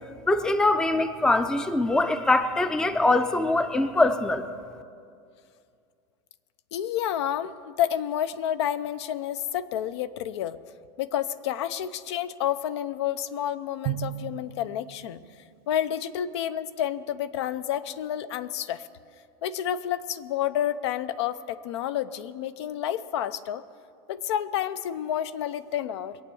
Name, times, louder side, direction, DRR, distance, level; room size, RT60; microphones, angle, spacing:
voice 1, 0.3-4.5, left 2 dB, 5° left, 11 dB, 0.4 m, -23 dB
voice 2, 6.7-10.6 11.0-15.2 15.7-18.9 19.4-23.6 24.1-26.2, left 10 dB, 75° left, 14 dB, 0.6 m, -29 dB
Drum, 13.8-15.6, right 13 dB, 60° right, 0.7 m, -35 dB
22.0 x 8.5 x 7.0 m, 2.4 s
supercardioid pair, 155°, 14 cm